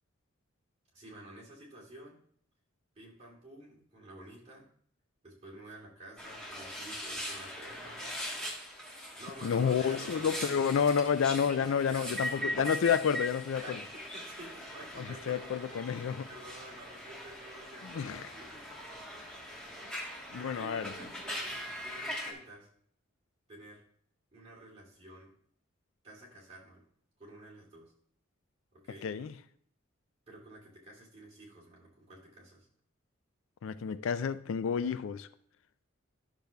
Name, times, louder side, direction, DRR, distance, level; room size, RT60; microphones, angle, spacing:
voice 1, 0.9-2.2 2.9-4.7 5.2-8.1 9.2-11.0 11.5-12.9 13.6-15.7 16.3-18.9 19.5-22.7 23.5-23.8 24.3-25.3 26.0-26.8 27.2-27.9 28.7-29.1 30.3-32.7, right 1 dB, 30° right, 2.6 m, -50 dB
sound 1, 6.2-22.3, equal, 5° left, 1.3 m, -41 dB
voice 2, 9.4-13.8 15.0-16.3 17.8-18.3 20.3-20.9 29.0-29.3 33.6-35.3, left 7 dB, 75° left, 0.3 m, -30 dB
12.0 x 6.7 x 2.3 m
head